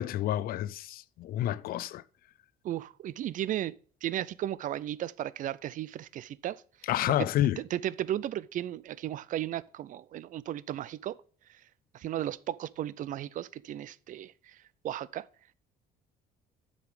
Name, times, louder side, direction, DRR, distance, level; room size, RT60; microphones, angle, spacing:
voice 1, 0.0-2.0 6.9-7.6, left 12 dB, 60° left, 0.4 m, -29 dB
voice 2, 2.6-3.7 4.0-6.6 7.6-11.2 11.9-14.6 14.8-15.3, right 12 dB, 50° right, 0.4 m, -35 dB
8.1 x 5.1 x 5.0 m
cardioid pair, 110°, 17 cm